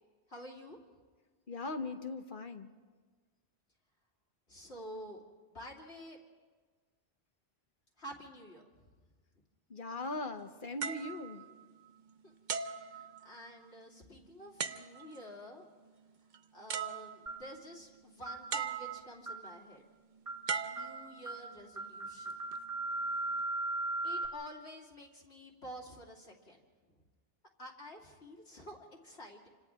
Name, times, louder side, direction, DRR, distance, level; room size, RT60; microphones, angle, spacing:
voice 1, 0.3-0.8 4.5-5.2 5.5-6.2 8.0-8.9 12.2-12.3 12.7-15.6 16.5-19.8 20.6-22.4 24.0-26.9 27.6-29.5, equal, 75° left, -1 dB, 3.1 m, -50 dB
voice 2, 1.5-2.7 9.7-11.4, left 2 dB, 50° left, 7 dB, 1.2 m, -40 dB
sound 1, 10.8-12.0 12.5-13.6 14.6-15.3 16.3-16.4 16.7-17.5 18.5-19.3 20.5-21.6 22.3-22.6, right 6 dB, 50° right, 0.8 m, -39 dB
sound 2, 17.3-17.5 18.3-18.5 19.3-19.5 20.3-20.5 20.8-21.0 21.3-21.5 21.8-24.3, right 2 dB, 30° right, 1.5 m, -37 dB
28.5 x 26.0 x 3.6 m, 1.4 s
omnidirectional pair, 1.1 m